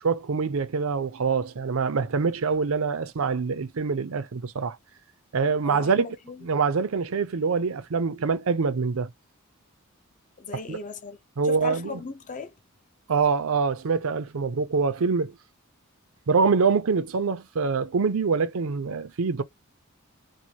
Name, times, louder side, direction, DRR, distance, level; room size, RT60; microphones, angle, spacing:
voice 1, 0.0-4.8 5.3-6.2 6.4-9.1 10.7-10.8 11.4-11.9 13.1-15.3 16.3-19.4, right 5 dB, 65° right, 0.5 m, -25 dB
voice 2, 5.6-6.4 10.4-11.2 11.4-12.5, left 4 dB, 35° left, 0.6 m, -37 dB
2.6 x 2.5 x 2.8 m
head